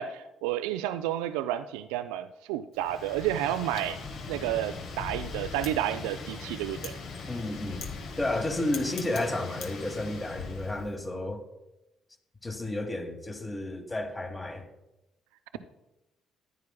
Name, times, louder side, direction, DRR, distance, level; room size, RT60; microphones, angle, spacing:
voice 1, 0.0-4.0 4.3-7.0, right 12 dB, 70° right, 11 dB, 0.3 m, -31 dB
Wind, 2.8-10.9, left 4 dB, 60° left, 1.2 m, -40 dB
voice 2, 7.3-7.9 8.2-11.4 12.4-14.7, left 1 dB, 25° left, 6 dB, 1.6 m, -32 dB
14.5 x 9.4 x 2.2 m, 0.94 s
figure-of-eight pair, 45°, 0 cm